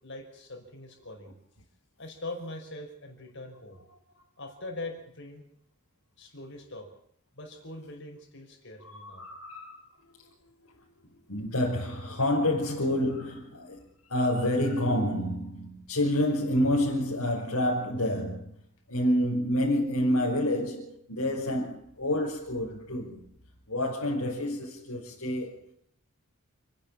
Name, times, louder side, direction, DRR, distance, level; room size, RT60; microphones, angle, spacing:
voice 1, 0.0-1.3 2.0-3.8 4.4-5.4 6.2-6.9 7.3-9.2, left 2 dB, 55° left, 5.5 m, -42 dB
voice 2, 8.8-9.9 10.2-10.3 11.3-18.6 18.9-23.3 23.7-25.7, left 1 dB, 75° left, 5.5 m, -28 dB
29.5 x 11.0 x 8.7 m
head